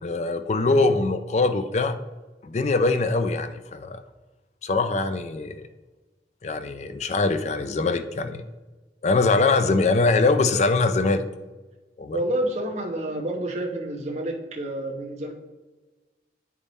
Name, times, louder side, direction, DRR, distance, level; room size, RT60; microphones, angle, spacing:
voice 1, 0.0-2.0 2.4-4.0 4.6-5.6 6.4-8.4 9.0-11.2 12.0-12.2, left 3 dB, 40° left, 10 dB, 0.4 m, -22 dB
voice 2, 12.1-15.3, right 1 dB, 40° right, 0 dB, 0.9 m, -29 dB
8.8 x 3.6 x 4.0 m, 1.2 s
head